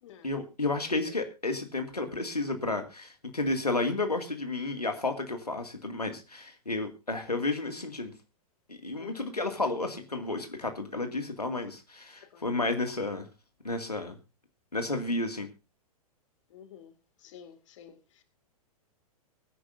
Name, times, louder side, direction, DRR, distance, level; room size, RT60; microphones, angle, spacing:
voice 1, 0.2-8.1 8.7-13.3 13.6-14.1 14.7-15.5, left 2 dB, 85° left, 2.2 m, -32 dB
voice 2, 0.7-1.2 9.0-9.4 12.1-12.5 16.5-16.9 17.2-18.2, left 10 dB, 55° left, 2.2 m, -50 dB
23.0 x 10.0 x 2.6 m
figure-of-eight pair, 105°, 19 cm